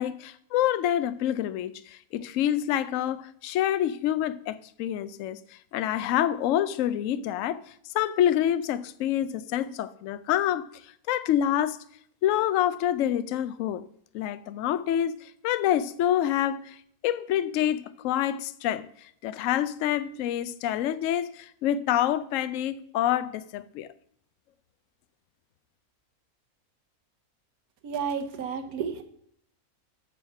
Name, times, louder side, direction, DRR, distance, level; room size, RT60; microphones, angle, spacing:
voice 1, 0.0-5.4 5.7-7.6 7.9-10.7 11.1-11.8 12.2-13.8 14.1-16.8 17.0-18.9 19.2-23.9, left 11 dB, 65° left, 0.8 m, -27 dB
voice 2, 27.8-29.0, right 6 dB, 70° right, 1.4 m, -31 dB
7.4 x 5.6 x 5.5 m
omnidirectional pair, 1.6 m